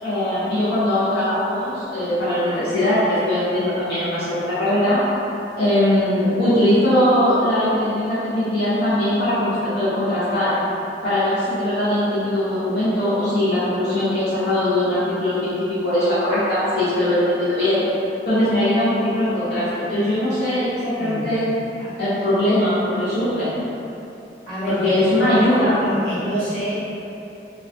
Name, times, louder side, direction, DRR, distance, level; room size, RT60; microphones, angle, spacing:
voice 1, 0.0-5.0 5.6-10.6 11.0-17.8 18.2-21.4 22.0-23.5 24.7-25.8, left 1 dB, 65° left, -13 dB, 0.5 m, -20 dB
voice 2, 21.0-21.3 21.8-21.9 24.4-26.9, equal, 30° left, -15 dB, 1.1 m, -27 dB
2.3 x 2.1 x 2.5 m, 2.9 s
head